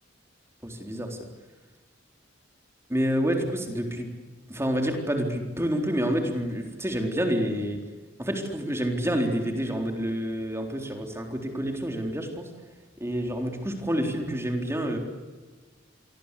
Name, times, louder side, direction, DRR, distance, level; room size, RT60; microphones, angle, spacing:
voice 1, 0.6-1.2 2.9-4.1 4.5-7.8 8.2-12.5 13.0-15.0, equal, 15° right, 3 dB, 4.0 m, -28 dB
29.0 x 24.0 x 8.5 m, 1.3 s
head